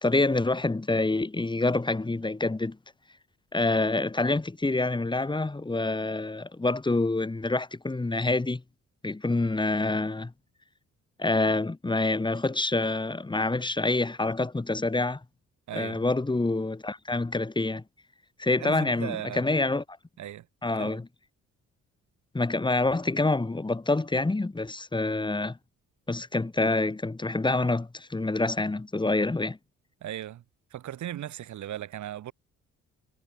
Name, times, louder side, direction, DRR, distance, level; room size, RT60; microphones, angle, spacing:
voice 1, 0.0-2.8 3.5-8.6 9.0-10.3 11.2-15.2 15.7-17.8 18.4-20.0 20.6-21.1 22.3-25.6 26.1-29.6, left 2 dB, 15° left, 2.0 m, -27 dB
voice 2, 15.7-16.1 18.6-19.5 20.2-20.5 20.7-21.0 30.0-30.4 30.7-32.3, right 12 dB, 75° right, 3.8 m, -37 dB
cardioid pair, 90°, 30 cm